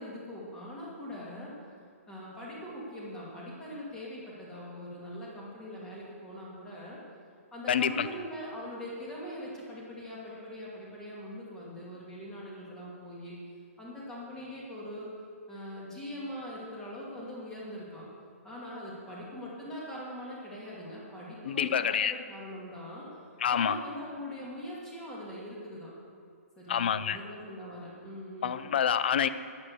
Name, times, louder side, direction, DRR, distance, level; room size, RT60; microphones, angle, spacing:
voice 1, 0.0-1.5 2.1-7.0 7.5-13.4 13.8-15.1 15.5-18.1 18.4-23.1 23.5-25.9 26.6-28.7, equal, 5° left, -5 dB, 2.5 m, -42 dB
voice 2, 7.7-8.1 21.4-22.1 23.4-23.8 26.7-27.2 28.4-29.3, left 8 dB, 45° left, 14 dB, 0.5 m, -27 dB
12.5 x 10.0 x 6.6 m, 2.3 s
hypercardioid pair, 175°, 8 cm